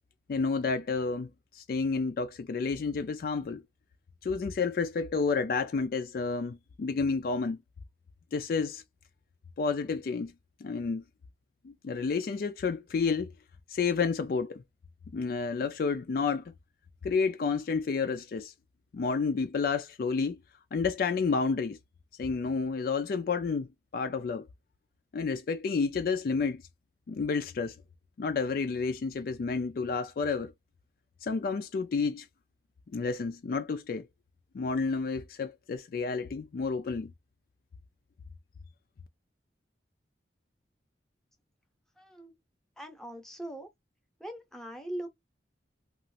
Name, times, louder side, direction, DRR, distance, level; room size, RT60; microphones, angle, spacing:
voice 1, 0.3-3.6 4.2-7.6 8.3-8.8 9.6-10.3 10.6-11.0 11.6-13.3 13.7-14.6 15.1-16.4 17.0-18.5 18.9-20.4 20.7-21.8 22.2-24.5 25.1-26.6 27.1-27.7 28.2-30.5 31.2-32.3 32.9-34.1 34.5-37.1, left 4 dB, 55° left, 0.3 m, -30 dB
voice 2, 42.0-42.3 42.8-43.7 44.2-45.1, right 1 dB, 5° left, 0.7 m, -41 dB
2.9 x 2.4 x 2.5 m
head